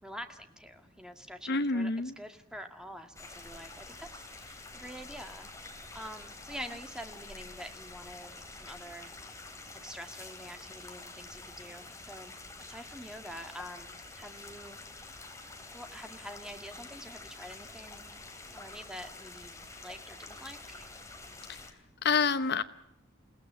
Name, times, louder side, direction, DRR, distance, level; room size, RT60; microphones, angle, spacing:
voice 1, 0.0-1.9 2.2-9.1 9.7-12.3 12.6-14.8 15.7-18.2 18.5-21.0, equal, 5° right, 6 dB, 2.0 m, -46 dB
voice 2, 1.5-2.1 21.5-21.6 22.0-22.6, left 4 dB, 55° left, 12 dB, 0.9 m, -27 dB
sound 1, 3.1-21.7, left 3 dB, 15° left, 3.2 m, -48 dB
29.5 x 17.0 x 7.6 m, 0.80 s
head